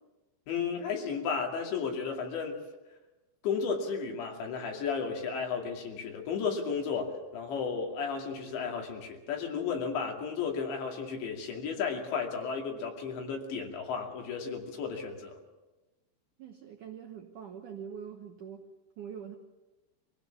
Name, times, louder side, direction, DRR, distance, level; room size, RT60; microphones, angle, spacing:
voice 1, 0.5-2.6 3.4-15.4, left 5 dB, 70° left, 1 dB, 4.7 m, -33 dB
voice 2, 16.4-18.7 19.0-19.4, right 8 dB, 70° right, 2 dB, 1.9 m, -43 dB
25.0 x 16.5 x 7.1 m, 1.1 s
omnidirectional pair, 5.3 m